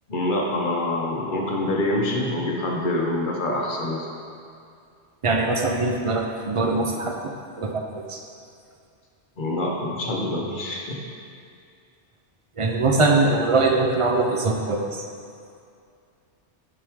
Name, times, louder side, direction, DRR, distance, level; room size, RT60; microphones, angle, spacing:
voice 1, 0.1-4.1 9.4-10.8, left 1 dB, 50° left, -2 dB, 1.1 m, -25 dB
voice 2, 5.2-7.3 7.6-8.2 12.6-15.0, right 3 dB, 35° right, 1 dB, 0.6 m, -22 dB
7.5 x 6.1 x 3.6 m, 2.4 s
omnidirectional pair, 1.2 m